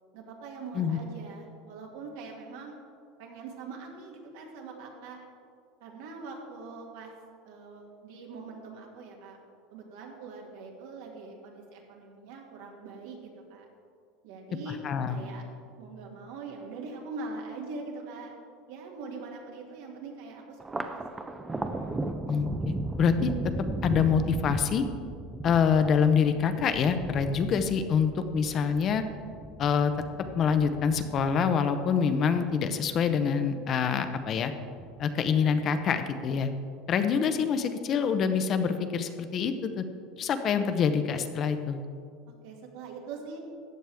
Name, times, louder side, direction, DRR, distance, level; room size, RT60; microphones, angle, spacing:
voice 1, 0.1-2.7 3.2-5.2 5.8-7.1 7.4-9.4 9.7-13.7 14.2-14.8 15.1-15.4 15.8-18.3 18.7-21.0 21.3-21.4 42.3-43.4, right 4 dB, 75° right, 0 dB, 2.2 m, -42 dB
voice 2, 14.7-15.3 22.3-23.3 23.8-24.8 25.4-29.0 29.6-29.9 30.4-34.5 35.0-36.5 36.9-39.8 40.2-41.8, left 6 dB, 35° left, 9 dB, 0.6 m, -26 dB
Thunder, 20.6-33.3 33.7-34.5 34.8-35.7, right 2 dB, 10° right, 0.5 m, -37 dB
14.0 x 9.2 x 3.5 m, 2.3 s
supercardioid pair, 150°, 0 cm